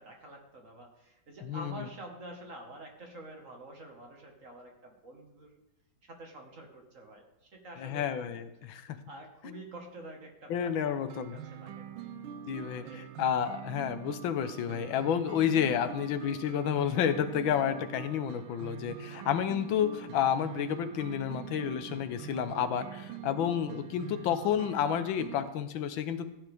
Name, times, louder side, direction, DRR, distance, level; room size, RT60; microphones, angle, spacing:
voice 1, 0.0-5.5 6.0-8.2 9.1-12.1 12.8-13.1 19.0-19.3, right 1 dB, 40° right, 2 dB, 1.9 m, -48 dB
voice 2, 1.4-1.9 7.8-9.0 10.5-11.4 12.5-26.3, left 9 dB, 80° left, 11 dB, 1.6 m, -30 dB
sound 1, 11.1-25.5, right 8 dB, 90° right, 1.5 m, -44 dB
15.5 x 9.4 x 3.6 m, 0.96 s
omnidirectional pair, 2.1 m